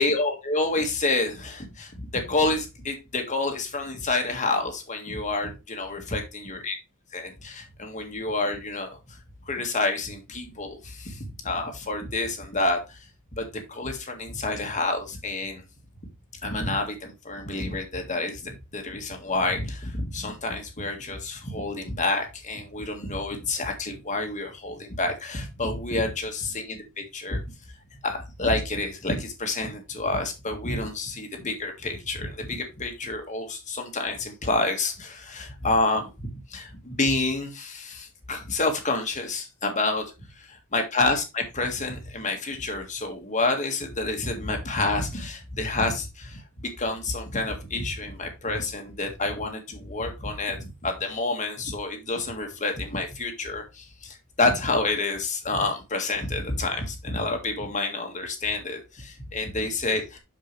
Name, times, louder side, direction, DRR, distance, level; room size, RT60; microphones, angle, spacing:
voice 1, 0.0-6.2 6.7-6.8 7.1-9.2 9.5-13.0 13.4-15.6 16.4-27.4 28.0-40.1 40.4-60.2, left 2 dB, 35° left, 3 dB, 1.8 m, -28 dB
7.6 x 6.6 x 3.3 m, 0.25 s
head